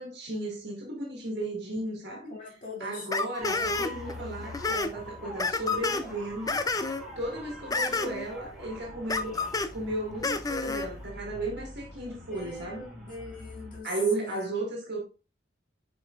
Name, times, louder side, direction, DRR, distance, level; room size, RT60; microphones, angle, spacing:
voice 1, 0.0-2.3 2.8-6.6 7.2-12.8 13.8-15.0, right 2 dB, 60° right, 2.0 m, -34 dB
voice 2, 2.3-3.1 12.3-13.9 14.2-14.5, left 2 dB, 45° left, 2.4 m, -43 dB
sound 1, 3.1-4.1 4.4-4.9 5.4-6.0 6.5-7.0 7.7-8.3 9.1-9.7 10.2-10.9, left 3 dB, 20° left, 0.4 m, -29 dB
sound 2, 3.4-13.8, equal, ahead, 3.9 m, -44 dB
8.6 x 5.1 x 2.5 m
head